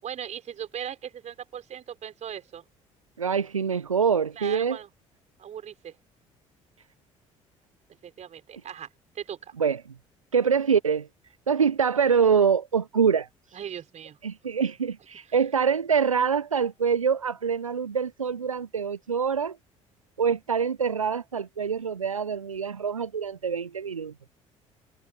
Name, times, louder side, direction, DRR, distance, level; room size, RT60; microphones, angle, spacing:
voice 1, 0.0-2.6 4.3-4.9 5.4-6.0 8.0-8.9 9.1-9.5 13.5-14.2 15.3-15.4, right 9 dB, 45° right, 5.9 m, -38 dB
voice 2, 3.2-4.8 9.6-9.8 10.3-11.1 11.5-13.3 14.2-19.6 20.2-24.1, right 6 dB, 85° right, 0.9 m, -25 dB
figure-of-eight pair, 55°, 17 cm